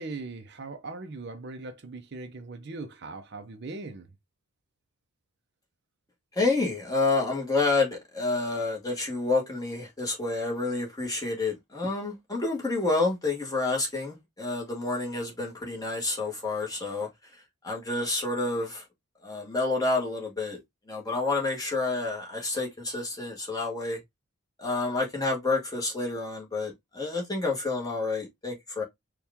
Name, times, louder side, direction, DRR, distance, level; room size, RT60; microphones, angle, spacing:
voice 1, 0.0-4.1, right 3 dB, 50° right, 0.6 m, -39 dB
voice 2, 6.3-17.1 17.6-18.8 19.2-20.6 20.9-24.0 24.6-28.8, left 3 dB, 15° left, 1.2 m, -29 dB
4.4 x 2.3 x 3.4 m
head